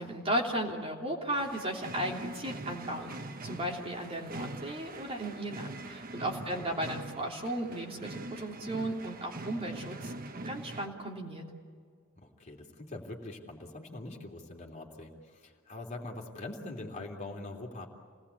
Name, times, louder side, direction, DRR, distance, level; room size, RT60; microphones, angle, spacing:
voice 1, 0.0-10.1 10.4-11.5, right 1 dB, 30° right, -1 dB, 3.1 m, -35 dB
sound 1, 1.4-10.9, right 2 dB, 45° right, 1.1 m, -43 dB
voice 2, 6.4-6.9 12.2-17.9, left 2 dB, 35° left, 0 dB, 3.2 m, -43 dB
28.5 x 19.0 x 8.5 m, 2.1 s
head